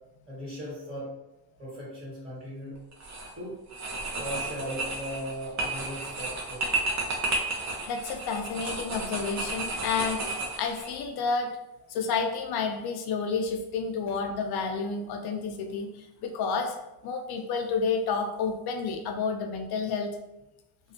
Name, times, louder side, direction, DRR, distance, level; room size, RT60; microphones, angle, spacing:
voice 1, 0.3-1.1 1.6-2.8 3.3-3.6 4.1-6.7, equal, 20° right, -8 dB, 1.5 m, -38 dB
sound 1, 2.9-3.3 3.7-10.9, right 2 dB, 40° right, 0.8 m, -32 dB
voice 2, 7.9-10.2 10.6-11.5 11.9-16.8 17.0-20.1, left 5 dB, 60° left, 4 dB, 0.5 m, -30 dB
2.5 x 2.3 x 2.7 m, 0.95 s
supercardioid pair, 90°, 43 cm